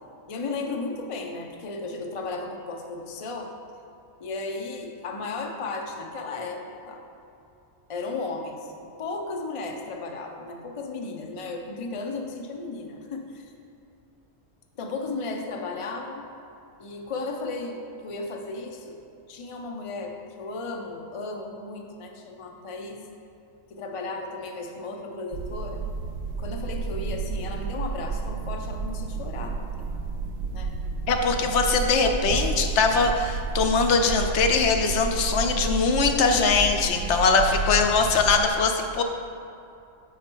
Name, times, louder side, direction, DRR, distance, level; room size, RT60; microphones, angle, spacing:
voice 1, 0.3-3.5 4.2-7.0 7.9-13.5 14.8-16.2 16.8-19.0 19.3-23.0 23.7-25.8 26.4-29.8 30.5-30.7, left 3 dB, 50° left, 2 dB, 0.3 m, -35 dB
sound 1, 25.3-38.5, right 4 dB, 65° right, 0.7 m, -31 dB
voice 2, 31.1-39.0, left 4 dB, 70° left, 5 dB, 0.8 m, -22 dB
6.4 x 5.0 x 4.5 m, 2.6 s
omnidirectional pair, 1.4 m